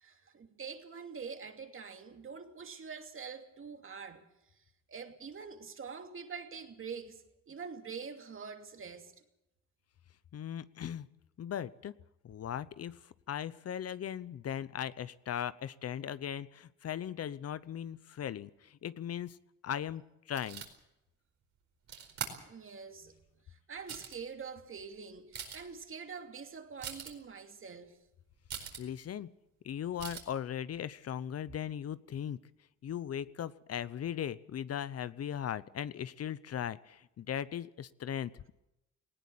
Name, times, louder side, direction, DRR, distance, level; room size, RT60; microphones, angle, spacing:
voice 1, 0.0-4.3 4.9-9.1 22.5-23.2 23.5-28.0, right 5 dB, 45° right, 2.6 m, -45 dB
voice 2, 10.3-11.1 11.4-11.9 12.2-19.4 19.6-20.6 28.8-29.3 29.6-32.4 32.8-38.5, left 9 dB, 55° left, 0.8 m, -38 dB
sound 1, 20.3-20.7 21.9-22.3 23.2-23.3 23.8-24.3 24.8-24.9 25.2-25.7 26.8-27.1 28.5-28.8 30.0-30.2, right 7 dB, 65° right, 4.7 m, -42 dB
19.5 x 17.5 x 8.5 m
cardioid pair, 90°, 30 cm